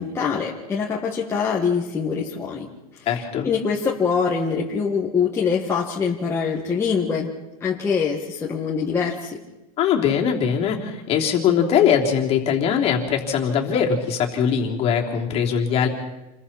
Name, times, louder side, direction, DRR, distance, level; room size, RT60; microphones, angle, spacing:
voice 1, 0.0-2.7 2.9-3.2 3.4-7.3 7.6-9.4, left 6 dB, 15° left, -4 dB, 1.9 m, -24 dB
voice 2, 3.0-3.5 9.8-15.9, left 7 dB, 30° left, 0 dB, 3.4 m, -21 dB
29.0 x 22.0 x 4.4 m, 1.0 s
supercardioid pair, 150°, 19 cm